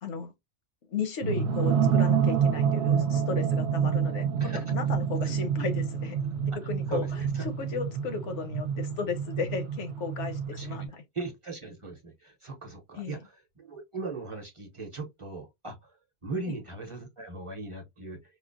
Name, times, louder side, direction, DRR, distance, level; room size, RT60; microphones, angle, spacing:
voice 1, 0.0-0.3 0.9-4.3 4.7-6.2 6.7-11.0 13.0-13.2, left 5 dB, 85° left, 1.0 m, -35 dB
sound 1, 1.2-10.9, right 7 dB, 65° right, 0.7 m, -28 dB
voice 2, 6.9-7.4 10.5-10.8 11.1-16.0 16.2-18.2, right 3 dB, 35° right, 0.6 m, -38 dB
4.3 x 2.0 x 2.4 m
omnidirectional pair, 1.2 m